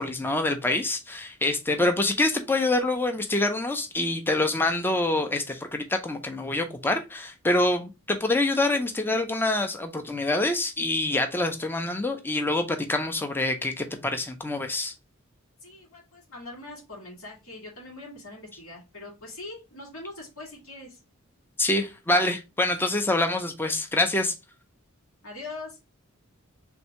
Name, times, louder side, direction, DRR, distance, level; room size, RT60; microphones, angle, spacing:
voice 1, 0.0-14.9 21.6-24.3, left 2 dB, 10° left, 0.5 m, -26 dB
voice 2, 15.6-21.0 25.2-25.8, left 2 dB, 75° left, 2.3 m, -42 dB
3.4 x 2.7 x 4.1 m
head